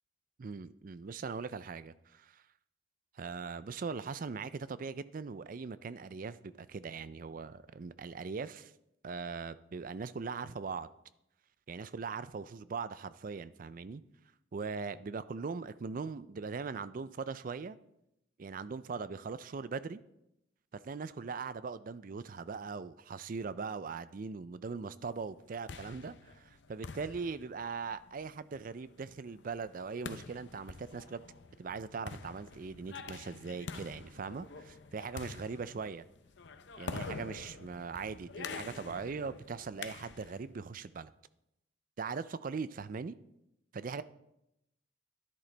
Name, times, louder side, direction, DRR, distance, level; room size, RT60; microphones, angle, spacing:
voice 1, 0.4-2.4 3.2-8.7 9.0-10.9 11.7-14.0 14.5-17.8 18.4-20.0 20.7-31.2 31.6-36.0 36.8-41.1 42.0-43.2 43.7-44.0, right 5 dB, 45° right, 15 dB, 0.4 m, -40 dB
sound 1, 25.3-40.5, left 4 dB, 65° left, 0.6 m, -47 dB
12.5 x 10.5 x 3.3 m, 0.85 s
head